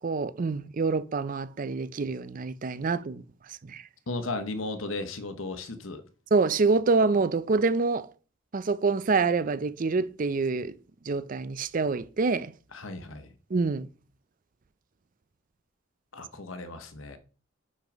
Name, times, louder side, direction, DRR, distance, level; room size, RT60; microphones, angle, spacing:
voice 1, 0.0-3.2 3.7-3.8 6.3-8.1 8.5-10.7 11.1-12.5 13.5-13.9, right 4 dB, 45° right, 0.5 m, -26 dB
voice 2, 4.1-6.0 12.7-13.3 16.1-17.2, left 2 dB, 80° left, 1.0 m, -35 dB
5.9 x 5.4 x 5.1 m
head